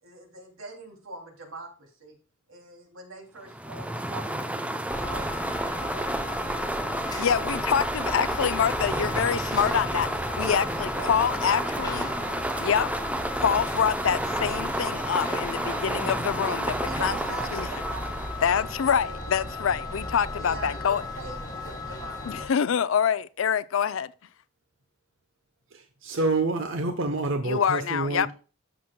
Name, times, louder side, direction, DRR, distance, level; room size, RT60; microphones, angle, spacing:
voice 1, 0.0-2.2 2.5-4.6 4.9-7.6 10.6-13.0 15.2-16.0 16.7-18.6 19.0-19.4 20.3-22.6, right 2 dB, 80° right, 2.7 m, -43 dB
sound 1, 3.5-18.9, right 1 dB, 5° right, 0.5 m, -31 dB
sound 2, 4.9-22.5, left 2 dB, 20° left, 1.5 m, -36 dB
voice 2, 7.2-10.1 10.3-12.1 12.6-12.9 13.4-17.1 17.5-17.7 18.4-21.0 22.3-24.1 27.4-28.3, left 7 dB, 70° left, 0.4 m, -26 dB
voice 3, 25.7-28.3, right 2 dB, 65° right, 0.8 m, -28 dB
13.0 x 6.2 x 2.2 m
head